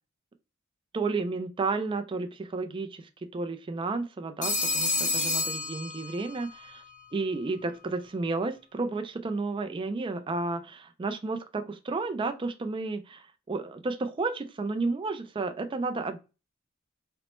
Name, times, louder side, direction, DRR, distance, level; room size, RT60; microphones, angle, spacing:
voice 1, 0.9-6.8 7.1-16.2, right 3 dB, 25° right, 0.3 m, -32 dB
Telephone, 4.4-6.5, left 3 dB, 35° left, 0.7 m, -29 dB
4.1 x 2.0 x 3.0 m
head